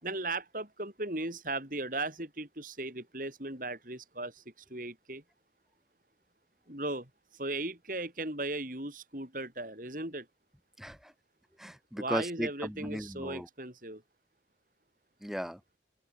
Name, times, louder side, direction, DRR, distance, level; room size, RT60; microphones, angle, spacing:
voice 1, 0.0-4.4 4.7-5.2 6.7-10.3 12.0-14.0, right 2 dB, 50° right, 6.3 m, -37 dB
voice 2, 10.8-11.1 11.6-13.5 15.2-15.6, equal, ahead, 6.1 m, -36 dB
open air
head